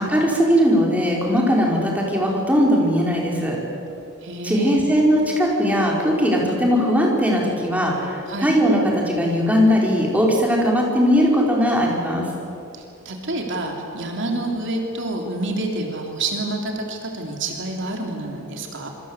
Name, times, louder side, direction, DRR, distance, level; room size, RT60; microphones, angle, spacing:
voice 1, 0.0-3.6 4.4-12.2, equal, 5° right, -2 dB, 5.1 m, -19 dB
voice 2, 4.2-5.1 8.3-8.5 12.7-18.9, right 2 dB, 60° right, 2 dB, 3.4 m, -28 dB
27.0 x 25.0 x 8.3 m, 2.7 s
head